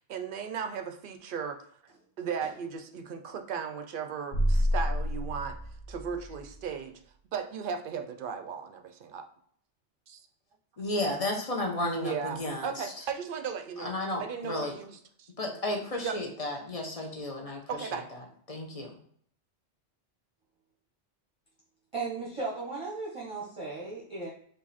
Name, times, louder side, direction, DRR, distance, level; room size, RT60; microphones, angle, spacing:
voice 1, 0.1-1.6 2.2-5.6 5.9-7.0 7.3-9.3 10.1-10.2 12.0-15.3 16.0-16.2 17.7-18.1, right 6 dB, 60° right, 7 dB, 0.6 m, -36 dB
sound 1, 4.3-6.8, equal, 80° left, 1.5 m, -29 dB
voice 2, 10.8-13.0 13.8-14.7 15.4-19.0, left 1 dB, 35° left, 1 dB, 0.8 m, -33 dB
voice 3, 21.9-24.3, right 3 dB, 30° right, -5 dB, 0.9 m, -36 dB
4.7 x 2.6 x 4.1 m, 0.62 s
omnidirectional pair, 1.2 m